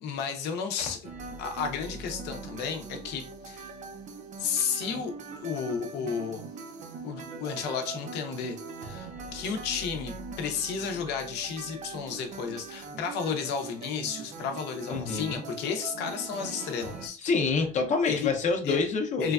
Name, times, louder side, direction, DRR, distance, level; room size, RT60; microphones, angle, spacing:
voice 1, 0.0-1.0 1.4-3.7 4.4-6.4 7.0-8.6 8.8-17.2 18.0-18.3 18.6-18.8 19.2-19.3, left 6 dB, 85° left, 5 dB, 0.6 m, -32 dB
sound 1, 1.0-17.1, right 4 dB, 45° right, 0.5 m, -42 dB
voice 2, 14.9-15.4 17.2-19.3, left 4 dB, 45° left, 3 dB, 0.6 m, -27 dB
3.2 x 2.2 x 2.3 m, 0.38 s
cardioid pair, 110°, 17 cm